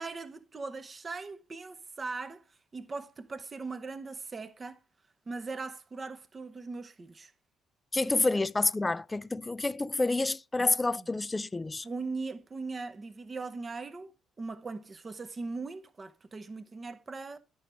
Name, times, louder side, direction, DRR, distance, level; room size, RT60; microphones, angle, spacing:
voice 1, 0.0-4.8 5.3-7.3 10.6-11.1 11.8-17.4, right 3 dB, 35° right, 0.8 m, -40 dB
voice 2, 7.9-11.9, left 2 dB, 20° left, 0.3 m, -28 dB
9.7 x 6.3 x 3.3 m
hypercardioid pair, 50°, 0 cm